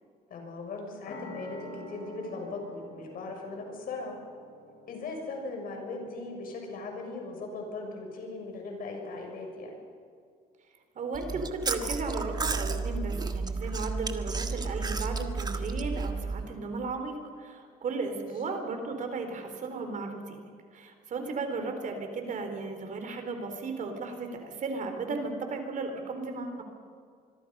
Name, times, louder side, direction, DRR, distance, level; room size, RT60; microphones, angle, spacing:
voice 1, 0.3-4.2 4.9-9.7, left 3 dB, 55° left, 2 dB, 6.7 m, -39 dB
sound 1, 1.0-8.3, left 1 dB, 80° left, 7.8 m, -48 dB
voice 2, 11.0-20.4 20.7-26.6, right 3 dB, 50° right, 6 dB, 3.9 m, -35 dB
Chewing mastication, 11.1-16.5, right 4 dB, 25° right, 1.6 m, -32 dB
25.5 x 22.5 x 5.5 m, 2.2 s
cardioid pair, 110°, 17 cm